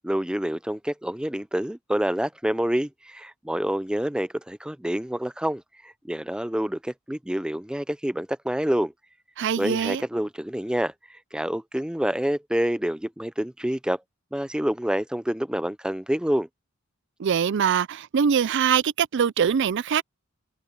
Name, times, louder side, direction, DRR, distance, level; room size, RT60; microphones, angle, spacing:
voice 1, 0.0-8.9 9.6-14.0 14.3-16.5, equal, 5° right, 0.5 m, -27 dB
voice 2, 9.4-10.0 17.2-20.0, right 7 dB, 60° right, 0.4 m, -23 dB
head